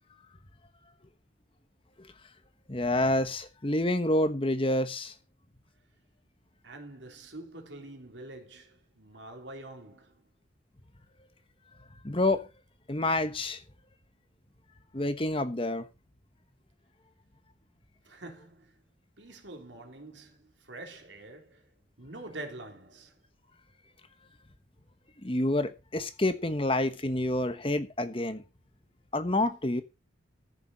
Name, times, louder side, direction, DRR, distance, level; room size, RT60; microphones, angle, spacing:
voice 1, 2.7-5.1 12.0-12.5 12.9-13.6 14.9-15.8 25.2-28.4 29.1-29.8, left 1 dB, 30° left, 1.1 m, -28 dB
voice 2, 6.6-10.2 18.0-18.7 19.2-21.7 22.0-23.2, right 2 dB, 70° right, 3.4 m, -46 dB
14.5 x 6.9 x 5.5 m
head